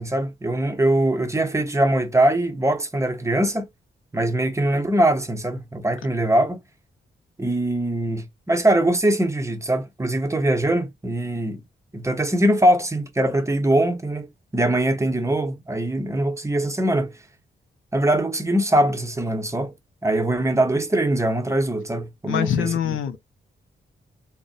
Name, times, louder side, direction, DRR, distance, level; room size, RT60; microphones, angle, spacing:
voice 1, 0.0-3.7 4.1-6.6 7.4-11.6 11.9-14.3 14.5-17.1 17.9-19.7 20.0-23.2, right 1 dB, 15° right, 0.6 m, -22 dB
voice 2, 22.3-23.2, left 9 dB, 80° left, 0.4 m, -24 dB
2.5 x 2.0 x 2.4 m
cardioid pair, 75°, 20 cm